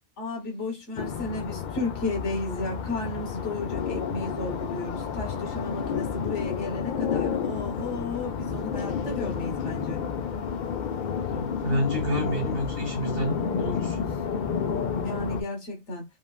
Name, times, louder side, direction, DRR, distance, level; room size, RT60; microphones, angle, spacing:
voice 1, 0.2-10.0 15.0-16.0, left 2 dB, 90° left, 1.5 m, -33 dB
sound 1, 1.0-15.4, left 6 dB, 55° left, 0.6 m, -30 dB
voice 2, 11.3-14.0, equal, 55° right, 1.4 m, -29 dB
3.5 x 2.4 x 2.3 m
omnidirectional pair, 1.2 m